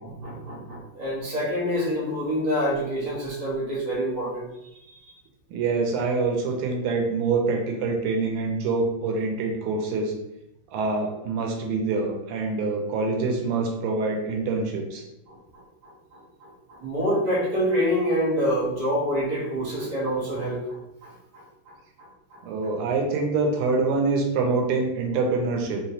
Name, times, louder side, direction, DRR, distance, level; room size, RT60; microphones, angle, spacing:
voice 1, 0.0-4.5 15.3-21.4 22.0-22.7, equal, 25° right, -6 dB, 0.9 m, -27 dB
voice 2, 5.5-10.1 10.7-15.0 22.4-25.8, right 3 dB, 85° right, 2 dB, 1.6 m, -25 dB
3.6 x 2.8 x 2.8 m, 0.86 s
omnidirectional pair, 2.4 m